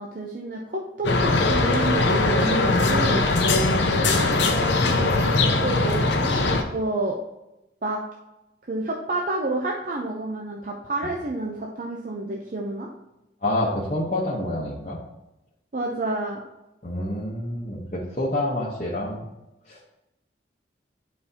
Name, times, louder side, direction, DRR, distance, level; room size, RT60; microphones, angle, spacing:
voice 1, 0.0-3.3 4.8-7.2 7.8-8.0 8.6-12.9 15.7-16.4, right 2 dB, 40° right, 0 dB, 0.6 m, -29 dB
sound 1, 1.0-6.6, left 2 dB, 70° left, 0.8 m, -21 dB
voice 2, 3.5-3.8 13.4-15.0 16.8-19.2 19.7-19.9, left 1 dB, 35° left, -6 dB, 1.0 m, -28 dB
10.0 x 4.3 x 2.8 m, 0.92 s
head